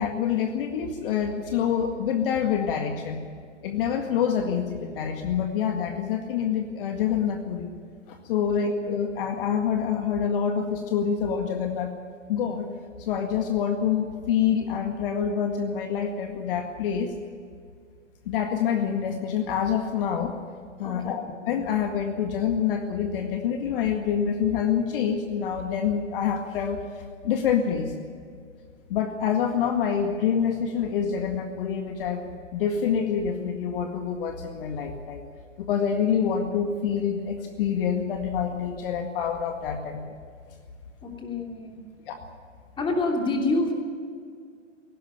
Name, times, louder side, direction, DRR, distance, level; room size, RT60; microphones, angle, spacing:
voice 1, 0.0-3.2 3.6-7.7 8.1-11.9 12.3-12.7 13.0-17.1 18.3-20.3 20.8-27.9 28.9-35.2 35.6-40.0 42.1-42.2, left 7 dB, 45° left, 4 dB, 2.0 m, -26 dB
voice 2, 20.8-21.2 41.0-41.8 42.8-43.7, left 2 dB, 15° left, 2 dB, 3.0 m, -27 dB
18.0 x 16.5 x 9.0 m, 2.2 s
figure-of-eight pair, 120°, 38 cm